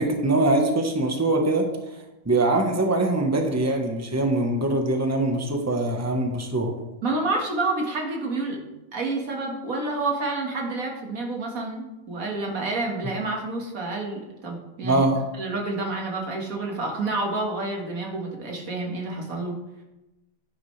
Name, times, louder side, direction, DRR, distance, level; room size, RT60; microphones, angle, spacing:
voice 1, 0.0-1.6 2.2-6.7 14.8-15.2, right 2 dB, 10° right, 3 dB, 1.2 m, -23 dB
voice 2, 7.0-8.6 8.9-15.1 15.4-19.6, right 2 dB, 90° right, 0 dB, 2.3 m, -29 dB
10.5 x 10.0 x 3.3 m, 0.99 s
omnidirectional pair, 1.4 m